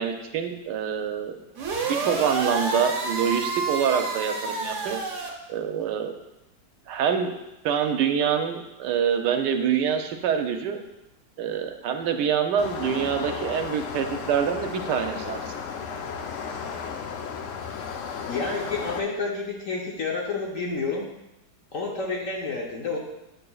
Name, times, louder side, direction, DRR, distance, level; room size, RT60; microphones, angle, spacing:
voice 1, 0.0-1.4 1.9-5.0 5.5-6.1 6.9-7.4 7.6-10.8 11.4-15.5, right 7 dB, 75° right, 6 dB, 1.2 m, -26 dB
sound 1, 1.6-5.3, right 3 dB, 55° right, 1.0 m, -29 dB
sound 2, 12.6-19.0, left 6 dB, 75° left, 0.7 m, -34 dB
voice 2, 18.3-21.1 21.7-23.0, left 4 dB, 55° left, -1 dB, 1.1 m, -29 dB
7.5 x 6.7 x 2.3 m, 0.92 s
omnidirectional pair, 2.0 m